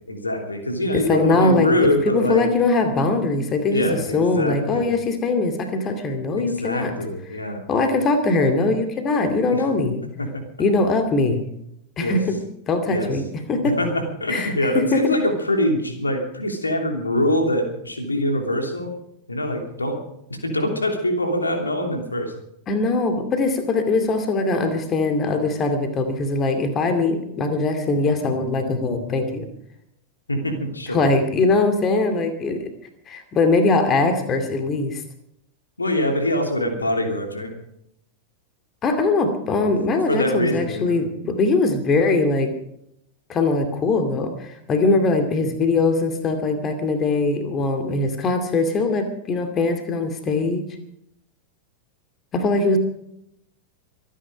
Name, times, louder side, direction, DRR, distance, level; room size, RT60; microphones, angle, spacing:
voice 1, 0.0-2.4 3.7-4.9 6.3-7.6 9.5-9.6 10.2-10.4 12.0-12.2 12.9-13.1 13.6-18.9 19.3-20.0 20.3-22.3 30.3-31.1 35.8-37.5 40.1-41.0, left 1 dB, 80° left, 4 dB, 3.0 m, -24 dB
voice 2, 0.9-1.7 2.1-6.9 7.7-10.0 10.6-11.4 12.0-12.4 12.7-13.2 13.5-13.8 14.3-15.0 22.7-29.5 30.9-32.7 33.1-35.0 38.8-42.5 43.3-50.6 52.3-52.8, left 3 dB, 25° left, 7 dB, 2.4 m, -21 dB
24.5 x 10.0 x 5.1 m, 0.75 s
figure-of-eight pair, 90°, 0 cm